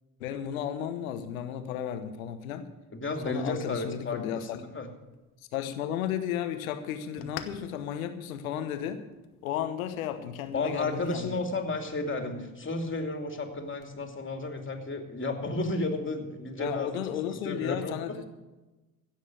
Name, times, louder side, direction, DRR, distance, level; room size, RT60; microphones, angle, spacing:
voice 1, 0.2-2.7 3.2-4.6 5.5-9.0 9.4-11.4 16.6-18.2, left 10 dB, 85° left, 9 dB, 1.1 m, -34 dB
voice 2, 2.9-4.2 4.5-4.9 10.5-17.9, left 2 dB, 30° left, 5 dB, 2.6 m, -33 dB
sound 1, 5.0-14.0, left 10 dB, 70° left, 1.3 m, -52 dB
16.0 x 6.6 x 8.5 m, 1.1 s
hypercardioid pair, 55°, 40 cm